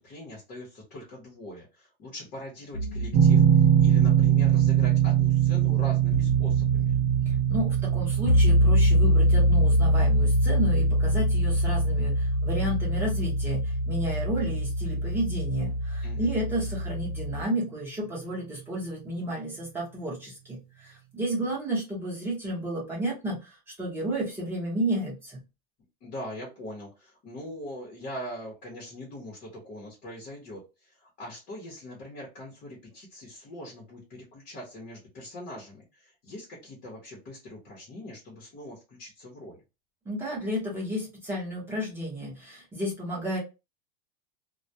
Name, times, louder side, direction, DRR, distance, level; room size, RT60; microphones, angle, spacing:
voice 1, 0.0-7.0 16.0-16.3 26.0-39.6, left 1 dB, 25° left, -3 dB, 0.7 m, -42 dB
sound 1, 2.7-17.4, equal, 65° left, 0.6 m, -25 dB
sound 2, 3.1-16.0, right 10 dB, 35° right, 0.5 m, -25 dB
voice 2, 7.3-25.4 40.0-43.4, right 1 dB, 10° right, -6 dB, 0.8 m, -32 dB
2.2 x 2.1 x 2.7 m, 0.27 s
supercardioid pair, 175°, 29 cm